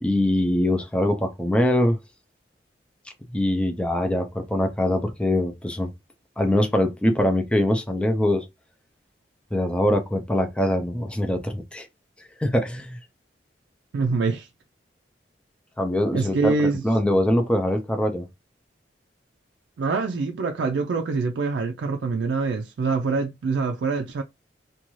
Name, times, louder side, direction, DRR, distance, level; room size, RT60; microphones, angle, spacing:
voice 1, 0.0-2.0 3.3-5.9 6.4-8.5 9.5-11.9 12.4-13.0 15.8-16.5 16.8-18.3, left 1 dB, 5° left, 0.4 m, -23 dB
voice 2, 13.9-14.5 16.1-16.8 19.8-24.2, right 4 dB, 85° right, 0.3 m, -25 dB
2.5 x 2.3 x 3.0 m
head